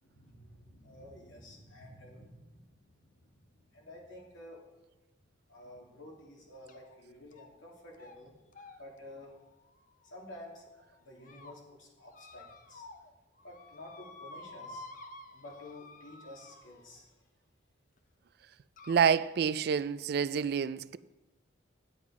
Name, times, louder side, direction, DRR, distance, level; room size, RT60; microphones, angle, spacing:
voice 1, 0.0-4.6 5.5-8.4 8.8-9.3 10.0-10.7 11.0-12.9 13.4-14.9 15.3-17.1, left 1 dB, 85° left, 2.8 m, -51 dB
sound 1, 6.7-7.0 7.3-7.7 7.9-8.2 8.5-10.5 11.0-11.5 12.1-13.1 13.4-17.0 18.0-18.1 18.8-19.1, left 2 dB, 45° left, 0.7 m, -51 dB
voice 2, 18.9-21.0, right 7 dB, 55° right, 0.3 m, -28 dB
9.2 x 9.2 x 4.8 m
head